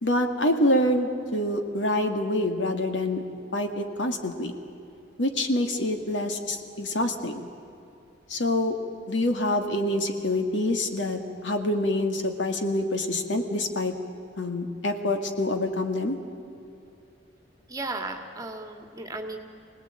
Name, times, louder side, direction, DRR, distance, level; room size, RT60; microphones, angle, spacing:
voice 1, 0.0-3.2 3.5-4.5 5.2-7.5 8.3-8.7 9.1-13.9 14.4-16.2, left 1 dB, 75° left, 5 dB, 2.2 m, -26 dB
voice 2, 17.7-19.4, right 2 dB, 20° right, 4 dB, 2.0 m, -35 dB
25.5 x 18.5 x 8.9 m, 2.8 s
head